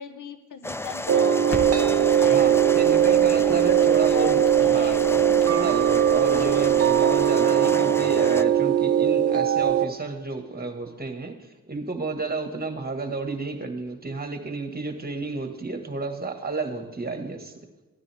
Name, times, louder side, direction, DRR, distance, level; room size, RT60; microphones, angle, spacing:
voice 1, 0.0-2.7 3.4-5.0, left 6 dB, 65° left, 10 dB, 1.2 m, -38 dB
sound 1, 0.6-8.4, left 2 dB, 10° left, 0.4 m, -33 dB
sound 2, 1.1-9.9, right 10 dB, 45° right, 0.6 m, -20 dB
Crackle, 1.5-7.2, equal, 45° left, 2.3 m, -41 dB
voice 2, 2.3-4.4 4.7-5.0 5.5-17.5, right 3 dB, 30° right, 5 dB, 1.8 m, -31 dB
14.0 x 9.8 x 3.6 m, 1.1 s
cardioid pair, 60°, 33 cm